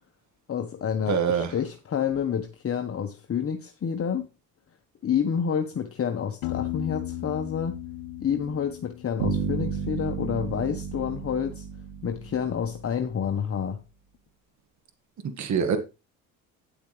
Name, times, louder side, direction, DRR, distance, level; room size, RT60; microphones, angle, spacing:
voice 1, 0.5-4.3 5.0-7.8 8.2-11.6 12.0-13.8, left 7 dB, 40° left, 1.3 m, -29 dB
voice 2, 1.1-1.5 15.4-15.8, right 7 dB, 50° right, 2.0 m, -24 dB
Piano, 6.4-10.1, left 14 dB, 75° left, 1.1 m, -36 dB
sound 1, 9.2-12.9, right 6 dB, 85° right, 2.6 m, -32 dB
10.0 x 8.6 x 3.4 m
supercardioid pair, 80°, 37 cm